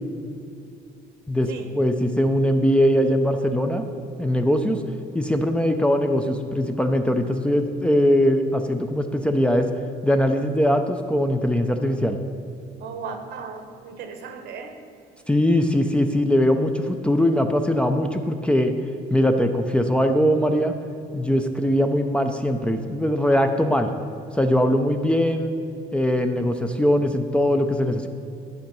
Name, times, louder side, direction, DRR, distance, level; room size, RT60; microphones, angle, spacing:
voice 1, 1.3-3.9 4.2-4.8 5.1-9.7 10.0-12.2 15.3-18.7 19.1-20.7 21.1-23.9 24.3-25.5 25.9-28.1, equal, 5° left, 6 dB, 0.5 m, -21 dB
voice 2, 12.8-14.8, right 5 dB, 75° right, 6 dB, 1.0 m, -36 dB
10.5 x 4.5 x 5.3 m, 2.6 s
cardioid pair, 110°, 17 cm